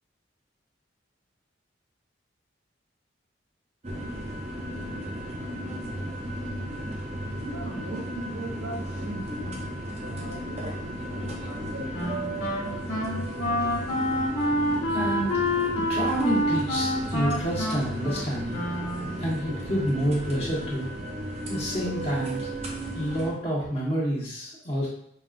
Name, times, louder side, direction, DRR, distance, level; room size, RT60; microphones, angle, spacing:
sound 1, 3.8-23.3, right 1 dB, 35° right, 0.6 m, -34 dB
voice 1, 7.4-9.7 10.0-12.2, right 1 dB, 85° right, 0 dB, 1.0 m, -39 dB
Wind instrument woodwind instrument, 11.9-19.4, left 1 dB, 75° left, 1.4 m, -28 dB
voice 2, 14.9-15.3 15.7-18.6 19.2-20.9 21.5-22.4 22.9-24.9, equal, 35° left, -6 dB, 1.2 m, -28 dB
5.3 x 2.4 x 2.4 m, 0.69 s
head